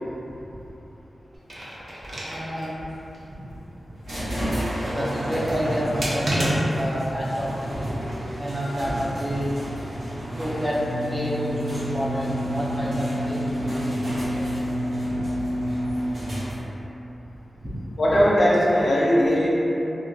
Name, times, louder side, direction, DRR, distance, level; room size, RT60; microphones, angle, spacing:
sound 1, 1.3-2.7 3.1-3.2 5.2-6.9 7.8-8.3, right 1 dB, 60° right, 0.7 m, -30 dB
voice 1, 2.3-2.8 3.3-3.4 4.8-8.0 8.4-9.6 10.4-10.8 11.1-14.6 15.1-15.2 17.6-17.7, equal, 5° right, -7 dB, 0.5 m, -29 dB
sound 2, 4.0-16.8, right 1 dB, 90° right, 1.0 m, -32 dB
sound 3, 10.7-16.0, equal, 10° left, 1.0 m, -29 dB
voice 2, 18.0-19.5, equal, 65° left, -6 dB, 0.5 m, -19 dB
3.2 x 2.3 x 2.4 m, 3.0 s
wide cardioid pair, 75°, 0 cm